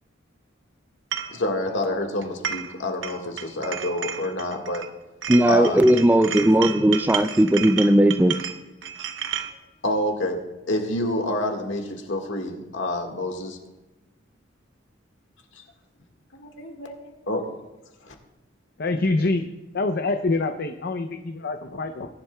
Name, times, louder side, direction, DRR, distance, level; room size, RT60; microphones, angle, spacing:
sound 1, 1.1-1.3 2.2-2.8 3.0-4.9 5.2-9.5, right 8 dB, 70° right, 0.8 m, -32 dB
voice 1, 1.3-4.8 5.5-6.0 9.8-10.4 10.7-13.6 16.3-17.5, left 1 dB, 70° left, 1.7 m, -28 dB
voice 2, 5.3-8.4, right 1 dB, 10° right, 0.4 m, -17 dB
voice 3, 18.8-19.5 19.7-22.1, left 3 dB, 55° left, 0.6 m, -25 dB
19.0 x 11.0 x 2.3 m
head